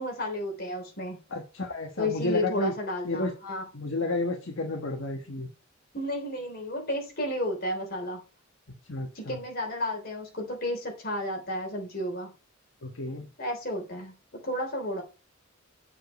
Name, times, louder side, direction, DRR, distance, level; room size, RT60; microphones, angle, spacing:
voice 1, 0.0-1.2 2.0-3.7 5.9-8.2 9.1-12.3 13.4-15.0, left 1 dB, 50° left, 3.4 m, -32 dB
voice 2, 1.3-2.7 3.0-3.3 3.7-5.5 8.9-9.4 12.8-13.3, left 2 dB, 70° left, 1.4 m, -31 dB
7.6 x 5.0 x 5.3 m
head